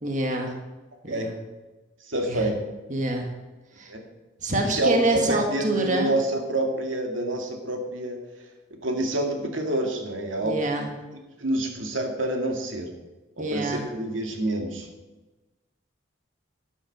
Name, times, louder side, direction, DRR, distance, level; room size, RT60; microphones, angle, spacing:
voice 1, 0.0-0.6 1.0-1.3 2.3-2.5 2.9-3.3 3.7-3.9 4.4-6.1 10.4-10.9 13.4-13.9, right 1 dB, 40° right, 2 dB, 1.7 m, -26 dB
voice 2, 2.1-2.6 3.9-4.0 4.6-8.2 8.8-10.6 11.4-12.9 13.4-14.9, right 1 dB, 85° right, 3 dB, 2.3 m, -27 dB
13.0 x 10.0 x 6.0 m, 1.1 s
head